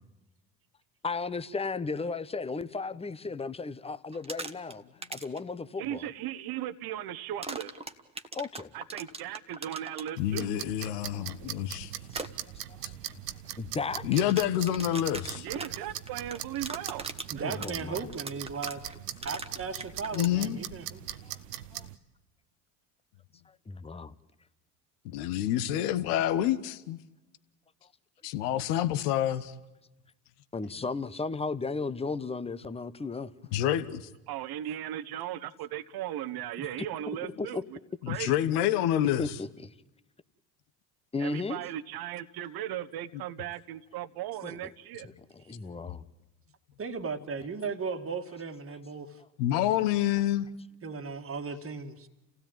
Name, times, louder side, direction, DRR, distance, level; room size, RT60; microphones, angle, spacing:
voice 1, 1.0-4.8 5.1-6.1 8.3-8.7 11.7-11.8 12.1-12.3 13.6-14.2 17.4-18.1 21.2-21.4 21.7-21.9 23.5-24.1 30.5-33.3 36.8-36.9 37.4-37.6 39.2-39.7 41.1-41.6 44.4-44.6 45.0-46.1, left 4 dB, 15° left, 0.9 m, -35 dB
sound 1, 4.1-4.7 5.0-5.4 7.4-10.1 12.1-12.3 14.1-20.3, right 3 dB, 10° right, 1.5 m, -39 dB
voice 2, 5.8-7.8 8.7-10.5 15.3-17.1 17.3-17.7 34.3-37.8 38.1-38.3 41.2-45.1, right 12 dB, 50° right, 1.2 m, -37 dB
voice 3, 10.2-11.9 14.0-15.5 20.1-20.6 25.0-27.0 28.2-29.5 33.5-34.1 38.0-39.2 49.4-50.5, left 12 dB, 70° left, 1.2 m, -27 dB
sound 2, 10.2-22.0, right 12 dB, 85° right, 1.0 m, -41 dB
voice 4, 17.3-18.9 19.2-21.2 46.8-49.2 50.8-52.1, right 5 dB, 30° right, 2.0 m, -36 dB
28.5 x 16.0 x 9.1 m
hypercardioid pair, 70°, 47 cm